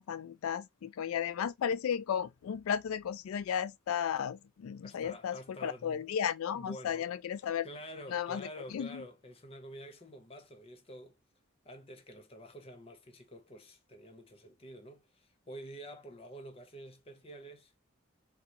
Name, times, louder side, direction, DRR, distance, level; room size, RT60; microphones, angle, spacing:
voice 1, 0.0-7.7 8.1-8.5 8.7-9.0, left 8 dB, 90° left, 0.3 m, -34 dB
voice 2, 4.8-6.0 6.5-7.2 7.6-11.2 11.6-17.7, equal, 30° left, 0.6 m, -49 dB
3.8 x 2.3 x 2.8 m
head